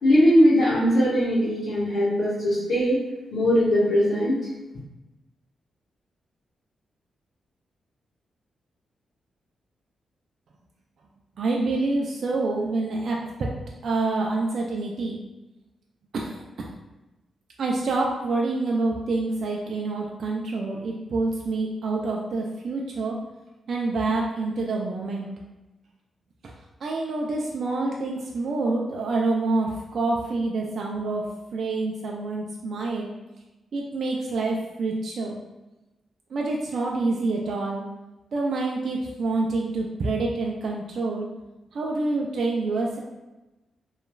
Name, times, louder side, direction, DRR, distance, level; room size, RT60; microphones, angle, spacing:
voice 1, 0.0-3.0 3.3-4.4, equal, 65° left, -10 dB, 0.9 m, -20 dB
voice 2, 11.4-13.5 13.8-15.2 16.1-16.4 17.6-23.2 23.7-25.3 26.4-26.5 26.8-31.3 31.5-33.1 33.7-35.4 36.3-37.8 38.3-41.3 41.7-43.0, right 3 dB, 60° right, -1 dB, 0.3 m, -27 dB
3.0 x 2.3 x 2.2 m, 1.0 s
wide cardioid pair, 130°, 0 cm